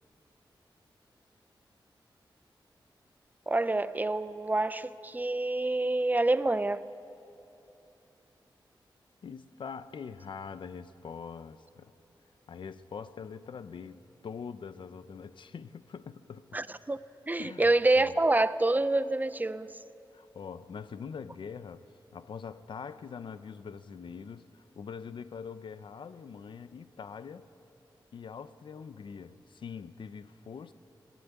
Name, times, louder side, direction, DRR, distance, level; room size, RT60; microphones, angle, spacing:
voice 1, 3.5-6.8 16.5-17.0 17.3-19.7, right 2 dB, 20° right, 0.5 m, -27 dB
voice 2, 9.2-11.9 12.5-16.5 17.4-18.2 20.1-21.9 22.1-27.5 28.1-30.7, left 6 dB, 75° left, 0.7 m, -43 dB
21.0 x 17.5 x 8.3 m
wide cardioid pair, 105°, 8 cm